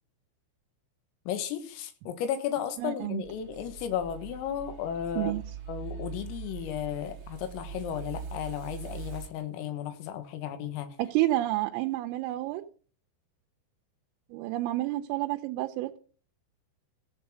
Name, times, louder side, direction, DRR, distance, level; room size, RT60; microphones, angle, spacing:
voice 1, 1.3-5.3 5.7-10.9, left 9 dB, 85° left, 9 dB, 4.2 m, -34 dB
voice 2, 2.8-3.2 5.2-5.4 11.0-12.6 14.3-16.0, right 16 dB, 85° right, 4 dB, 3.3 m, -29 dB
sound 1, 3.2-9.3, right 7 dB, 65° right, 1.5 m, -42 dB
15.0 x 7.3 x 6.2 m, 0.42 s
omnidirectional pair, 5.9 m